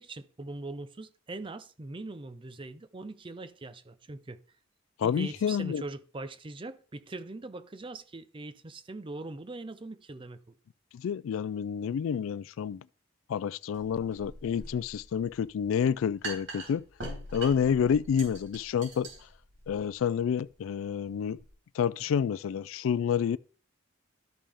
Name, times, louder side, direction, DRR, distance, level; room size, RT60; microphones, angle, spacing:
voice 1, 0.0-4.4 5.0-10.5, right 2 dB, 25° right, 0.5 m, -41 dB
voice 2, 5.0-5.8 10.9-12.8 13.3-16.8 17.3-19.1 19.7-21.4 21.7-23.4, left 7 dB, 85° left, 0.3 m, -29 dB
sound 1, 13.7-21.5, right 2 dB, 70° right, 3.7 m, -44 dB
13.0 x 5.4 x 3.4 m
head